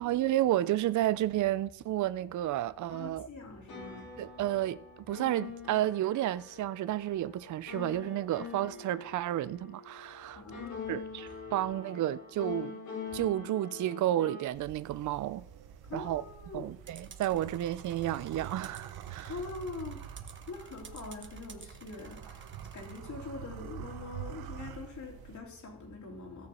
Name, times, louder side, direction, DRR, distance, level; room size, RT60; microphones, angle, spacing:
voice 1, 0.0-3.3 4.2-10.4 10.9-12.8 13.1-15.5 15.9-16.2 16.5-19.3, right 13 dB, 55° right, 0.5 m, -31 dB
voice 2, 2.9-4.4 10.3-11.1 11.4-11.7 13.3-13.4 15.8-16.8 19.2-26.5, left 3 dB, 50° left, 3.4 m, -44 dB
sound 1, 3.5-14.5, left 5 dB, 80° left, 5.4 m, -44 dB
sound 2, 14.5-25.4, right 11 dB, 85° right, 0.9 m, -46 dB
sound 3, 16.9-23.0, right 5 dB, 30° right, 1.1 m, -53 dB
16.5 x 6.7 x 4.3 m
cardioid pair, 100°, 36 cm